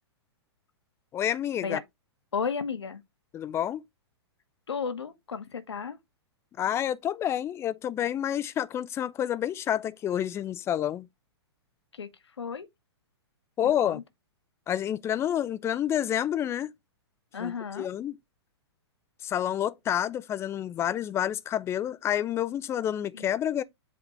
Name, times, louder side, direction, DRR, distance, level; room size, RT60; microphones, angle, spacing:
voice 1, 1.1-1.8 3.3-3.8 6.6-11.1 13.6-14.0 14.7-16.7 17.4-18.2 19.2-23.6, left 10 dB, 20° left, 0.5 m, -29 dB
voice 2, 2.3-3.0 4.7-6.0 11.9-12.1 12.4-12.7 13.6-14.0 17.3-17.9 23.1-23.3, left 6 dB, 75° left, 1.3 m, -33 dB
8.1 x 3.5 x 4.2 m
figure-of-eight pair, 110°, 14 cm